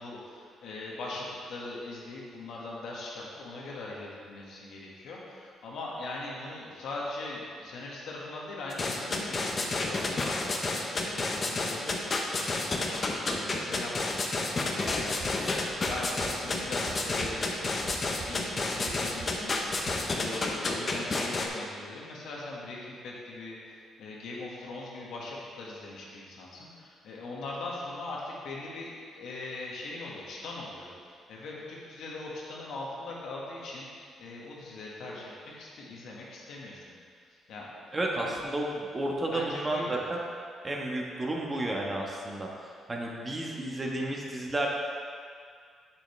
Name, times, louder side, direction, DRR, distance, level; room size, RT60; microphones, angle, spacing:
voice 1, 0.0-10.6 11.0-14.2 14.7-15.4 15.8-33.9 34.2-37.7 38.1-38.3 39.3-40.0, left 2 dB, 75° left, -4 dB, 1.7 m, -41 dB
sound 1, 8.7-21.5, left 3 dB, 35° left, 0.9 m, -30 dB
sound 2, 14.8-20.1, right 4 dB, 55° right, 0.7 m, -45 dB
voice 2, 37.9-40.2 40.6-42.5 42.9-44.7, right 1 dB, 25° right, -1 dB, 1.4 m, -32 dB
7.8 x 7.6 x 3.4 m, 2.2 s
cardioid pair, 90°, 0 cm